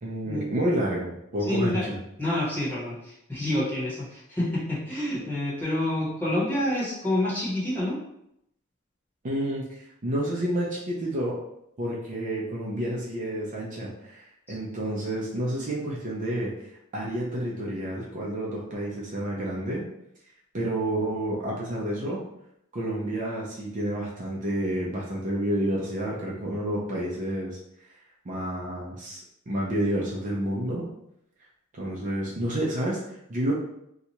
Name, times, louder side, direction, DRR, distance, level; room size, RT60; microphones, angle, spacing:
voice 1, 0.0-2.0 9.2-11.4 11.8-16.7 16.9-19.8 20.5-22.2 22.7-27.6 28.2-30.9 31.7-33.5, right 1 dB, 35° right, -4 dB, 0.5 m, -29 dB
voice 2, 1.4-1.9 2.2-8.0, left 1 dB, 10° left, -7 dB, 1.1 m, -28 dB
2.8 x 2.3 x 4.1 m, 0.79 s
head